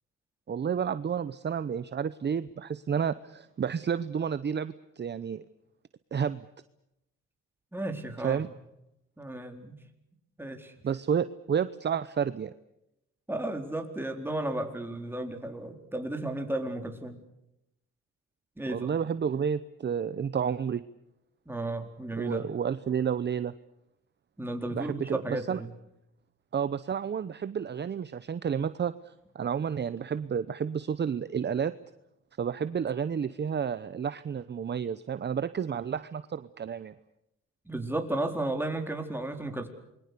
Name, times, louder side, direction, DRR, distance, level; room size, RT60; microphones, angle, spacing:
voice 1, 0.5-5.4 6.1-6.4 8.2-8.5 10.8-12.5 18.7-20.8 22.2-23.5 24.7-25.6 26.5-28.9 29.3-31.7 32.4-36.9, right 7 dB, 35° right, 14 dB, 0.8 m, -30 dB
voice 2, 7.7-8.4 9.2-9.8 10.4-10.7 13.3-17.2 18.6-19.0 21.5-22.4 24.4-25.7 37.7-39.7, right 1 dB, 5° right, 4 dB, 4.0 m, -34 dB
28.0 x 22.5 x 6.9 m, 0.87 s
cardioid pair, 90°, 30 cm